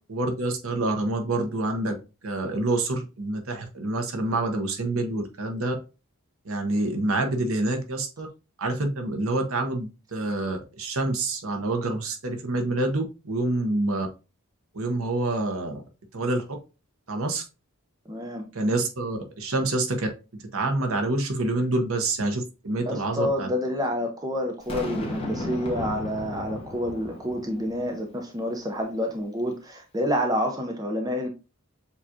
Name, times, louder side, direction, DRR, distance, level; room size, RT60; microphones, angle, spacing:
voice 1, 0.1-2.0 2.2-5.8 6.4-8.3 8.6-14.1 14.7-15.8 16.1-16.4 17.1-17.4 18.5-20.1 20.5-23.5, right 2 dB, 85° right, 0.9 m, -27 dB
voice 2, 18.1-18.5 22.9-31.3, equal, 20° right, 0.6 m, -28 dB
Boom, 24.7-28.0, left 1 dB, 25° left, 0.9 m, -34 dB
7.0 x 2.4 x 2.7 m
head